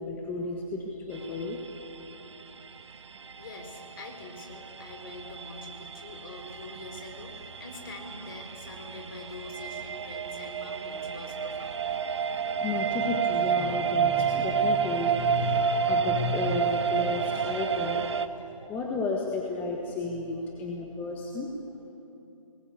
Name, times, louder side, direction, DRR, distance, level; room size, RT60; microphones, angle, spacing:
voice 1, 0.0-1.6 12.4-21.5, left 3 dB, 10° left, -1 dB, 1.5 m, -32 dB
sound 1, 1.1-18.3, right 6 dB, 55° right, 1.4 m, -30 dB
voice 2, 3.1-11.9, left 2 dB, 40° left, 4 dB, 4.5 m, -44 dB
30.0 x 20.5 x 8.4 m, 2.9 s
figure-of-eight pair, 155°, 17 cm